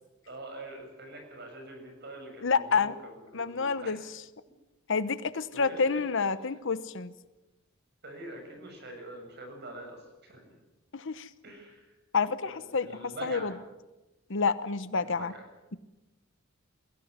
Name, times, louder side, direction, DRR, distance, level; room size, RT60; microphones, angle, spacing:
voice 1, 0.2-4.0 5.5-6.0 8.0-10.6 11.4-12.0 12.4-13.6 15.0-15.4, right 1 dB, 50° right, 4 dB, 6.9 m, -45 dB
voice 2, 2.4-2.9 3.3-4.0 4.9-7.1 10.9-11.3 12.1-13.5 14.3-15.3, left 5 dB, 60° left, 14 dB, 1.0 m, -28 dB
22.0 x 16.5 x 9.5 m, 1.1 s
head